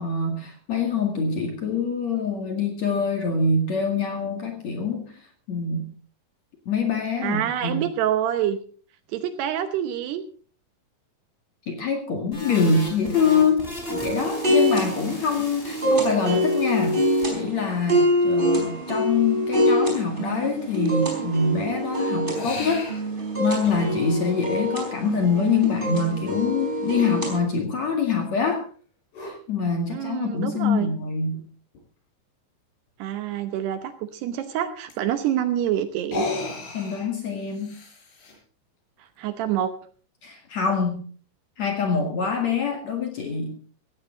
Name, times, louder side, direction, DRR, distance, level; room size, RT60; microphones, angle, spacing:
voice 1, 0.0-5.2 5.5-5.9 6.7-7.9 11.7-22.9 23.4-28.6 29.2-31.4 36.7-37.8 40.2-41.0 41.6-43.6, left 5 dB, 50° left, 3 dB, 2.5 m, -25 dB
voice 2, 7.2-8.6 9.1-10.2 29.9-30.9 33.0-36.3 39.0-39.7, right 10 dB, 75° right, 10 dB, 2.7 m, -27 dB
sound 1, 12.3-17.3, left 1 dB, 10° left, 4.9 m, -38 dB
sound 2, 13.9-27.4, equal, 10° right, 4.2 m, -25 dB
sound 3, 22.4-23.0 23.7-23.8 25.9-26.0 29.1-29.4 30.8-30.9 31.3-31.4 31.8-31.9 34.9-35.0 36.0-38.4, left 3 dB, 90° left, 8.1 m, -33 dB
16.5 x 16.0 x 3.9 m, 0.41 s
omnidirectional pair, 5.4 m